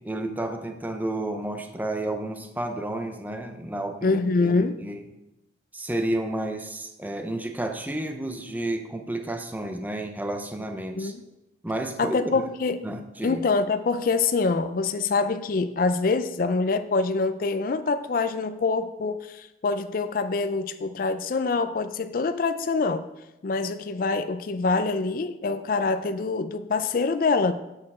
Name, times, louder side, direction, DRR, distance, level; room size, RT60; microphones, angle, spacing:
voice 1, 0.0-5.0 5.7-11.1 11.6-12.5 12.8-13.4, right 1 dB, 10° right, 6 dB, 0.6 m, -31 dB
voice 2, 4.0-4.8 11.0-11.2 12.0-12.8 13.2-23.1 23.4-27.5, left 4 dB, 50° left, 10 dB, 0.4 m, -25 dB
8.5 x 6.6 x 4.2 m, 0.94 s
head